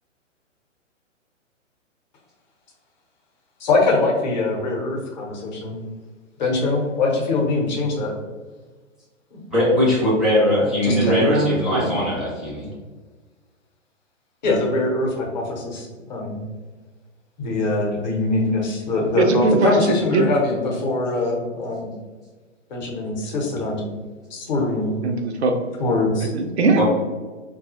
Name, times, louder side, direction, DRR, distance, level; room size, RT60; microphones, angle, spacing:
voice 1, 3.6-5.8 6.4-8.1 9.3-9.4 10.8-11.2 14.4-16.4 17.4-21.9 22.7-23.8 24.3-25.0 25.8-26.3, left 2 dB, 35° left, -2 dB, 0.9 m, -23 dB
voice 2, 9.5-12.7 26.8-26.9, left 1 dB, ahead, -9 dB, 0.6 m, -20 dB
voice 3, 10.9-12.2 19.2-20.3 25.0-25.6 26.3-26.8, right 3 dB, 60° right, 4 dB, 0.6 m, -21 dB
4.0 x 2.3 x 2.7 m, 1.3 s
figure-of-eight pair, 120°, 38 cm